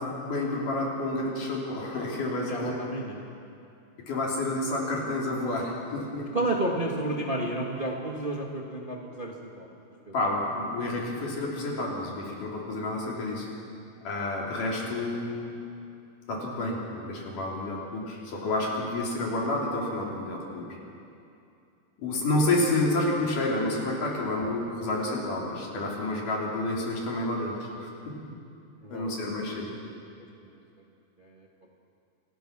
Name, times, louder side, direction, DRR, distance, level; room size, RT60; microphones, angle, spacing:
voice 1, 0.0-2.8 4.1-6.3 10.1-13.5 14.0-15.3 16.3-20.6 22.0-28.3 28.9-29.7, left 2 dB, 75° left, -3 dB, 5.1 m, -29 dB
voice 2, 2.5-3.2 6.3-9.7 10.1-10.2 28.8-29.3 31.2-31.5, right 2 dB, 20° right, -1 dB, 1.4 m, -31 dB
28.0 x 19.5 x 6.1 m, 2.6 s
omnidirectional pair, 3.7 m